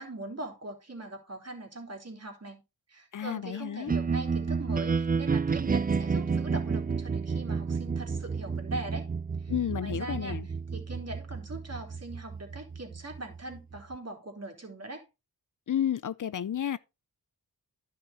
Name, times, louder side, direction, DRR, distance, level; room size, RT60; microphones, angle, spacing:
voice 1, 0.0-2.6 2.9-9.1 9.4-9.5 9.8-10.4 10.7-15.0, right 2 dB, 40° right, 3.5 m, -41 dB
voice 2, 3.1-3.9 9.5-10.5 15.7-16.8, left 10 dB, 55° left, 0.5 m, -31 dB
sound 1, 3.9-14.0, right 5 dB, 25° right, 0.4 m, -31 dB
11.0 x 6.0 x 4.2 m
cardioid pair, 55°, 37 cm